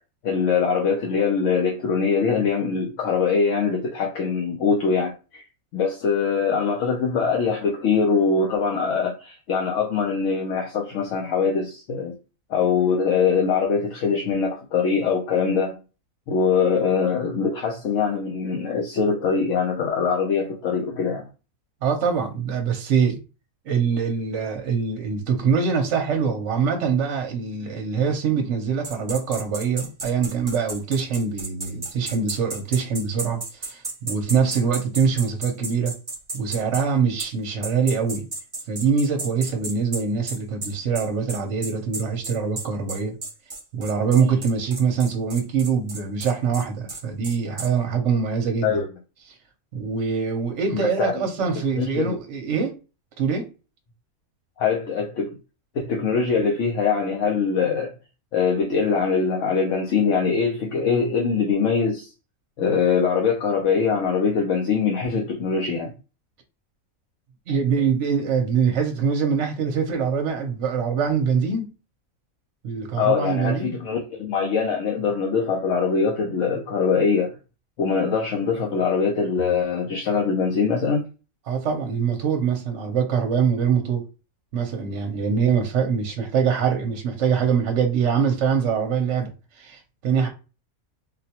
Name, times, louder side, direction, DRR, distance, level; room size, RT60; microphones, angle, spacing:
voice 1, 0.2-5.4 5.7-12.1 12.5-15.8 16.3-21.3 48.6-48.8 50.7-51.3 51.8-52.2 54.6-55.4 55.7-57.9 58.3-62.1 62.6-65.9 73.0-77.3 77.8-81.0, left 5 dB, 65° left, 0.9 m, -23 dB
voice 2, 21.8-23.2 23.6-35.9 36.3-38.2 38.7-43.2 43.7-48.8 49.7-52.7 53.2-53.5 67.5-71.7 72.6-73.8 81.5-84.0 84.5-90.3, right 6 dB, 60° right, 0.9 m, -23 dB
sound 1, 28.8-36.9 37.2-37.3 37.6-47.7, right 3 dB, 30° right, 0.4 m, -33 dB
3.9 x 2.2 x 2.8 m
omnidirectional pair, 1.5 m